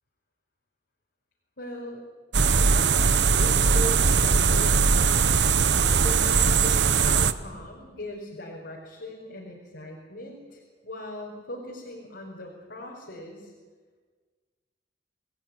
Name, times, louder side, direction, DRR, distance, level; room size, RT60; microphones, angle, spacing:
voice 1, 1.6-2.0 2.6-5.1 6.0-13.5, left 1 dB, 70° left, -2 dB, 5.0 m, -39 dB
sound 1, 2.3-7.3, right 5 dB, 75° right, 1.1 m, -20 dB
27.5 x 18.5 x 9.9 m, 1.5 s
head